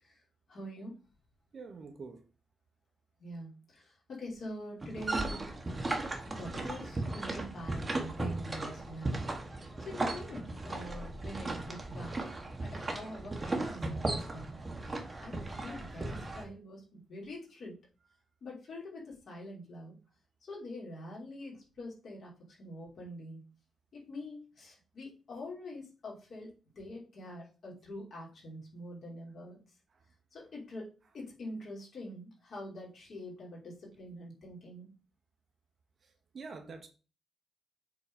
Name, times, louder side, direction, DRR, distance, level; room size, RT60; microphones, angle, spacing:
voice 1, 0.5-0.9 3.2-5.5 6.3-9.3 9.8-12.2 12.6-14.6 15.2-17.8 18.4-19.9 20.4-22.3 22.6-23.4 23.9-29.6 30.3-34.9, left 1 dB, 50° left, 3.5 m, -45 dB
voice 2, 1.5-2.2 29.9-30.0 36.0-36.9, right 4 dB, 40° right, 1.1 m, -46 dB
sound 1, 4.8-16.4, right 2 dB, 20° right, 1.3 m, -36 dB
7.4 x 4.0 x 5.1 m
wide cardioid pair, 160°, 0 cm